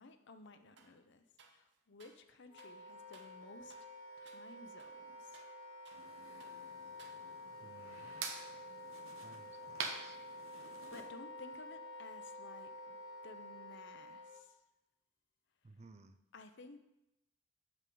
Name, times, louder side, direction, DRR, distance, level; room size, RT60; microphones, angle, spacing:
voice 1, 0.0-3.8 4.2-5.4 10.4-14.6 16.3-16.8, left 3 dB, 60° left, 9 dB, 0.7 m, -56 dB
sound 1, 0.8-1.0 1.4-2.3 2.6-2.8 3.1-3.4 3.7-4.0 4.3-4.5 4.8-6.1 6.4-6.6 7.0-7.6, right 5 dB, 60° right, 0.9 m, -63 dB
Wind instrument woodwind instrument, 2.5-14.4, left 2 dB, 85° left, 1.6 m, -50 dB
sound 2, 5.9-11.1, right 5 dB, 85° right, 1.0 m, -48 dB
voice 2, 7.6-8.3 9.2-10.2 15.6-16.2, right 3 dB, 35° right, 11 dB, 0.5 m, -59 dB
8.2 x 7.3 x 3.8 m, 0.89 s
head